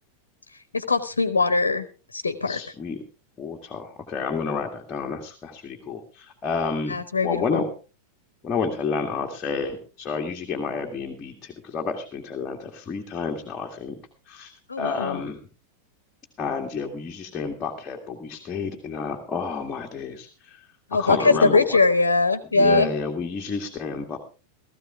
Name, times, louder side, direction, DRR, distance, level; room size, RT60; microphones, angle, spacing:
voice 1, 0.7-1.8 2.1-2.6 6.9-7.6 14.7-15.2 20.9-22.9, left 3 dB, 75° left, 12 dB, 1.1 m, -21 dB
voice 2, 2.5-3.0 3.4-7.0 7.2-7.7 8.4-13.9 14.3-15.4 16.4-21.8 22.5-24.2, left 5 dB, 25° left, 1 dB, 2.0 m, -30 dB
17.0 x 14.5 x 3.5 m, 0.35 s
figure-of-eight pair, 90°, 0 cm